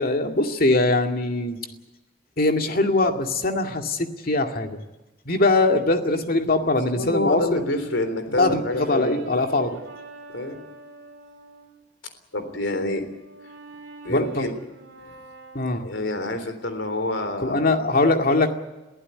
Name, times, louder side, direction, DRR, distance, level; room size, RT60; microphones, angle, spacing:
voice 1, 0.0-1.6 2.4-4.8 5.3-7.6 8.4-9.8 14.1-14.5 15.5-15.9 17.4-18.5, left 2 dB, 50° left, 4 dB, 2.3 m, -22 dB
voice 2, 6.9-9.3 10.3-10.6 12.3-13.0 14.0-14.6 15.0-15.1 15.8-17.8, left 2 dB, 75° left, 8 dB, 3.6 m, -27 dB
Brass instrument, 7.8-11.8 12.3-16.4, right 3 dB, 65° right, 3.7 m, -45 dB
22.5 x 15.0 x 9.7 m, 1.0 s
head